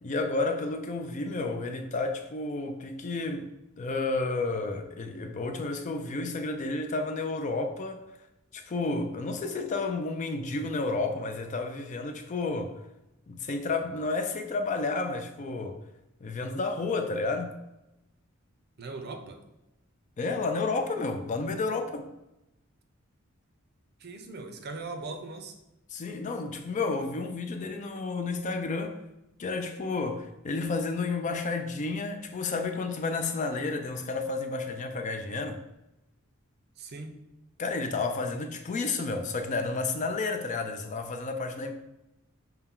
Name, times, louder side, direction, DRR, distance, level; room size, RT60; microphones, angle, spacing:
voice 1, 0.0-3.5 3.8-8.0 8.5-12.8 13.3-15.8 16.2-17.6 20.2-22.1 25.9-29.0 29.4-35.6 37.6-41.7, left 3 dB, 35° left, 0.4 m, -31 dB
voice 2, 18.8-19.4 24.0-25.5 36.8-37.2, right 3 dB, 50° right, 0.5 m, -39 dB
5.6 x 2.2 x 3.6 m
head